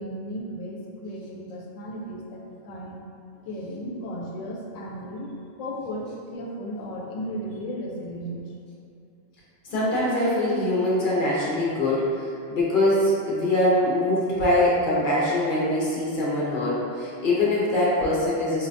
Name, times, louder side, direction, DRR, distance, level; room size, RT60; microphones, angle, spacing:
voice 1, 0.0-3.0 3.5-5.3 5.6-8.4, equal, 85° left, -2 dB, 0.9 m, -35 dB
voice 2, 9.7-18.7, left 1 dB, 50° left, -6 dB, 0.7 m, -23 dB
4.5 x 2.1 x 2.5 m, 2.6 s
omnidirectional pair, 1.3 m